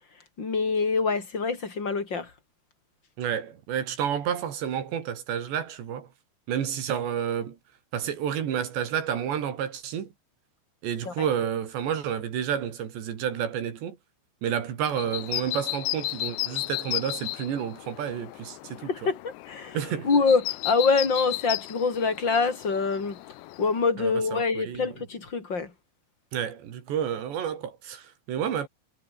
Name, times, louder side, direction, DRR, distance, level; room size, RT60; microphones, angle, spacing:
voice 1, 0.4-2.3 11.0-11.2 18.9-19.8 20.0-23.2 23.6-25.7, left 4 dB, 25° left, 4.4 m, -25 dB
voice 2, 3.2-6.1 6.5-7.6 7.9-10.1 10.8-14.0 14.4-18.9 19.7-20.1 24.0-24.8 26.3-28.7, right 9 dB, 65° right, 4.9 m, -30 dB
sound 1, 14.9-23.9, left 18 dB, 75° left, 2.7 m, -35 dB
omnidirectional pair, 5.6 m